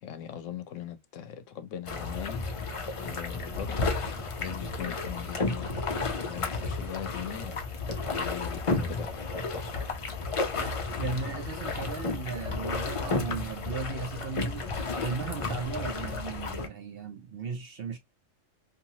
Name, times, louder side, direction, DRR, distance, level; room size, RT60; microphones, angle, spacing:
voice 1, 0.0-2.4 3.0-5.6 6.1-7.6 8.1-9.8, left 10 dB, 75° left, 0.9 m, -40 dB
sound 1, 1.9-16.7, left 3 dB, 45° left, 0.4 m, -32 dB
voice 2, 10.6-14.7 15.0-18.0, right 5 dB, 60° right, 0.7 m, -36 dB
2.9 x 2.6 x 2.6 m
omnidirectional pair, 1.3 m